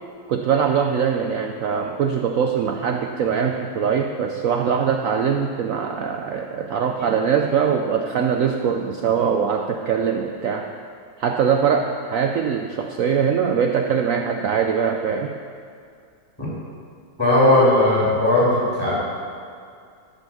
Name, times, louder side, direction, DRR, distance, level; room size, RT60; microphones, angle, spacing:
voice 1, 0.3-10.7 11.2-15.3, right 7 dB, 75° right, 4 dB, 0.7 m, -22 dB
voice 2, 17.2-18.9, left 1 dB, 10° left, -7 dB, 2.7 m, -17 dB
12.5 x 5.7 x 7.1 m, 2.3 s
omnidirectional pair, 2.0 m